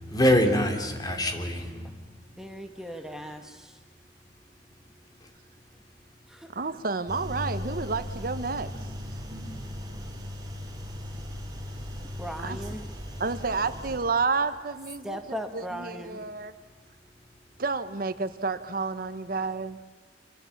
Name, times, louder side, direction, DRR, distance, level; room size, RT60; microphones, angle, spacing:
voice 1, 0.0-2.2, equal, 25° left, 4 dB, 3.1 m, -25 dB
voice 2, 2.4-3.8 6.3-6.5 12.2-12.9 15.0-16.3, equal, 5° right, 5 dB, 1.7 m, -38 dB
voice 3, 6.5-8.7 9.1-9.2 12.4-12.6 13.2-15.2 15.5-16.5 17.6-19.8, right 4 dB, 55° right, 11 dB, 1.0 m, -30 dB
sound 1, 7.1-14.0, left 1 dB, 25° right, 4.3 m, -37 dB
27.0 x 25.0 x 7.2 m, 1.3 s
head